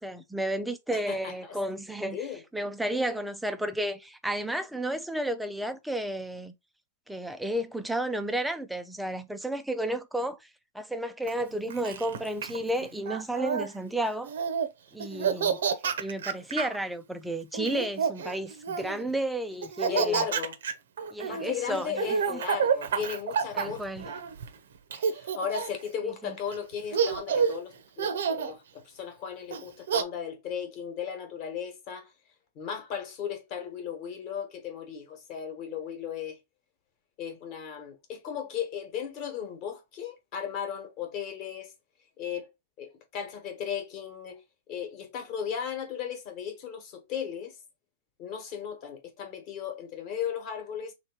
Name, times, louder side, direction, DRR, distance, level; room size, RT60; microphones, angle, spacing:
voice 1, 0.0-2.2 2.5-6.5 7.1-10.4 10.7-14.3 14.9-15.6 16.0-20.2 21.1-22.0 22.3-22.4 23.5-24.1 26.0-26.3, right 1 dB, ahead, 0.3 m, -32 dB
voice 2, 0.9-1.6 2.1-2.4 15.3-16.0 19.9-20.6 21.3-24.2 24.9-32.1 32.5-36.4 37.2-41.7 42.2-42.5 42.8-44.4 44.7-47.6 48.2-50.9, left 8 dB, 30° left, 1.1 m, -36 dB
Laughter, 11.3-13.7 14.2-14.7 15.0-16.8 17.5-19.0 19.6-24.5 24.9-25.9 26.5-26.6 26.9-27.6 28.0-28.5 29.5-30.0, right 6 dB, 70° right, 0.7 m, -29 dB
3.2 x 2.9 x 4.4 m
supercardioid pair, 170°, 0 cm